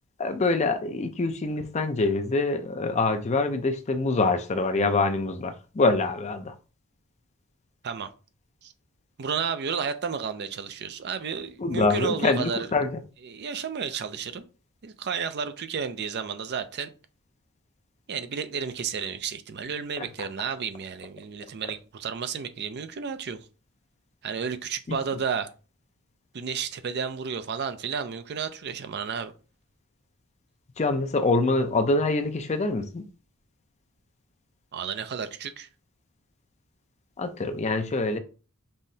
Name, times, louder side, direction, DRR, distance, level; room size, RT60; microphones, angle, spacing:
voice 1, 0.2-6.5 11.6-12.9 24.9-25.0 30.8-33.1 37.2-38.2, left 3 dB, 30° left, 0.5 m, -25 dB
voice 2, 9.2-12.7 13.2-14.4 14.8-16.9 18.1-23.5 24.2-25.5 26.3-29.3 34.7-35.7, right 6 dB, 50° right, 0.5 m, -32 dB
5.5 x 3.1 x 2.7 m
head